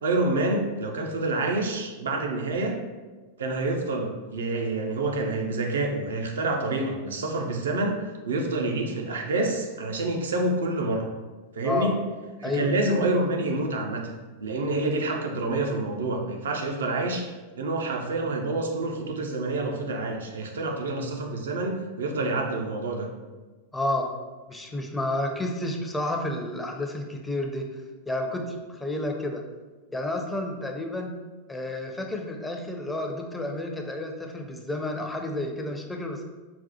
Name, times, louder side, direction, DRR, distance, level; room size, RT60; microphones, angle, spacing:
voice 1, 0.0-2.8 3.4-11.1 11.5-12.0 12.4-14.1 14.4-23.1 24.5-24.6, right 2 dB, 65° right, 2 dB, 0.5 m, -27 dB
voice 2, 23.7-24.1 24.5-27.7 28.1-29.4 29.9-31.1 31.5-36.2, left 1 dB, 10° left, 2 dB, 0.4 m, -30 dB
4.0 x 2.1 x 2.8 m, 1.2 s
figure-of-eight pair, 90°, 0 cm